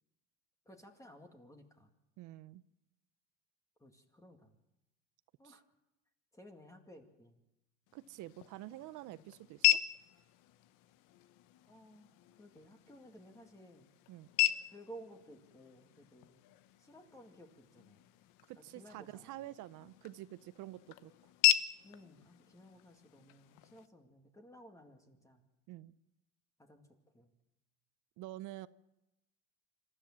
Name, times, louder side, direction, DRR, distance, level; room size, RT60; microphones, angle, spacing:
voice 1, 0.7-1.9 3.8-4.6 5.4-5.6 6.3-7.4 9.1-9.2 11.7-13.9 14.7-16.4 16.8-18.1 18.8-19.3 21.8-25.4 26.6-26.9 27.1-27.3, equal, 10° left, 3 dB, 2.2 m, -56 dB
voice 2, 2.2-2.6 5.4-5.6 7.9-9.8 14.1-14.3 18.5-21.1 25.7-25.9 28.2-28.7, right 15 dB, 65° right, 16 dB, 0.7 m, -48 dB
sound 1, 7.9-23.9, left 14 dB, 80° left, 1.1 m, -37 dB
26.5 x 13.5 x 7.4 m, 0.93 s
cardioid pair, 125°, 32 cm